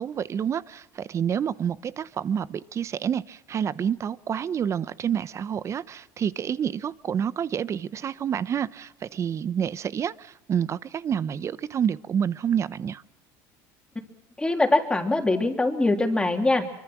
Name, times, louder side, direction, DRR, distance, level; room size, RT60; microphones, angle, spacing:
voice 1, 0.0-13.0, right 8 dB, 35° right, 17 dB, 0.9 m, -28 dB
voice 2, 14.4-16.8, left 2 dB, 10° left, 4 dB, 3.3 m, -23 dB
25.0 x 24.5 x 6.1 m, 0.92 s
supercardioid pair, 115°, 9 cm